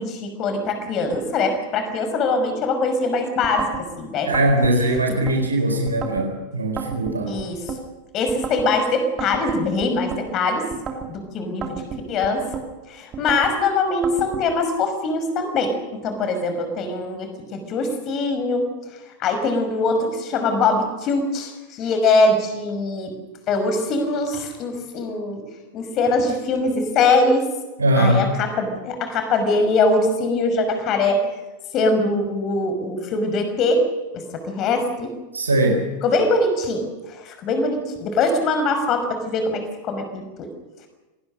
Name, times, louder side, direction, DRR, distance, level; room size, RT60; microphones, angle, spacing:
voice 1, 0.0-4.3 7.3-7.7 8.1-10.7 11.1-11.8 12.1-12.5 12.9-18.7 19.2-23.2 23.5-25.4 25.7-27.5 28.0-31.2 31.7-33.8 34.1-35.1 36.0-40.5, left 3 dB, 35° left, 7 dB, 5.7 m, -22 dB
sound 1, 3.4-3.8 4.3-5.4 5.9-6.3 6.8-7.8 8.3-8.7 9.2-10.2 10.7-11.1 11.6-12.7 13.1-13.5 14.0-14.5, right 6 dB, 25° right, 3.3 m, -32 dB
voice 2, 4.3-7.4 27.8-28.2 35.3-35.8, right 1 dB, 75° right, 3 dB, 4.2 m, -20 dB
26.5 x 19.5 x 6.5 m, 1.1 s
figure-of-eight pair, 90°, 0 cm